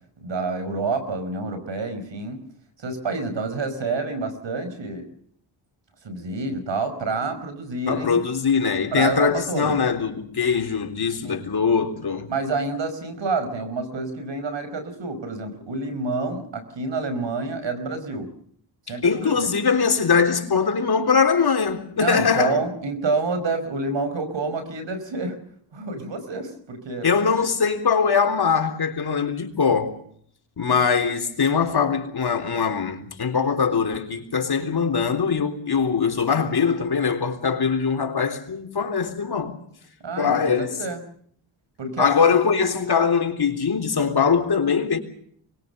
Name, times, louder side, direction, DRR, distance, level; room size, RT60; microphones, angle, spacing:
voice 1, 0.2-2.4 2.8-5.1 6.0-8.2 8.9-9.8 11.2-11.5 12.3-18.3 18.9-19.3 22.0-25.4 25.7-27.1 40.0-41.0 41.8-42.3, right 3 dB, 65° right, 5.2 m, -28 dB
voice 2, 7.9-12.3 19.0-22.6 27.0-30.0 30.6-39.6 40.2-40.8 42.0-45.0, left 6 dB, 50° left, 3.7 m, -22 dB
24.5 x 21.5 x 6.8 m
cardioid pair, 65°, 48 cm